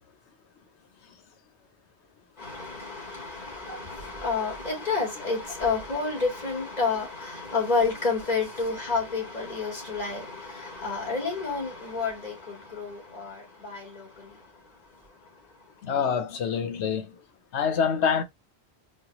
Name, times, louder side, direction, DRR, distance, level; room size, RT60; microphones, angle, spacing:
voice 1, 2.4-15.5, left 4 dB, 40° left, 2.1 m, -30 dB
voice 2, 15.8-17.2 17.5-18.2, left 7 dB, 85° left, 1.0 m, -26 dB
4.3 x 2.4 x 2.9 m
omnidirectional pair, 1.1 m